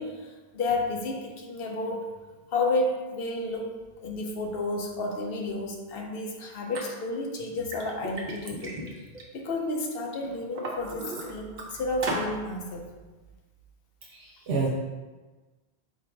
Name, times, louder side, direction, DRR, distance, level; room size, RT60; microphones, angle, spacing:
voice 1, 0.0-2.1 2.5-3.7 4.0-8.8 9.3-12.9, left 2 dB, 70° left, 1 dB, 0.8 m, -31 dB
Liquid, 6.7-6.8 7.4-9.8 10.2-11.6 12.0-12.3, right 1 dB, 50° right, 0.8 m, -35 dB
voice 2, 14.1-14.7, right 4 dB, 80° right, -3 dB, 0.9 m, -29 dB
4.3 x 2.5 x 4.5 m, 1.3 s
omnidirectional pair, 1.0 m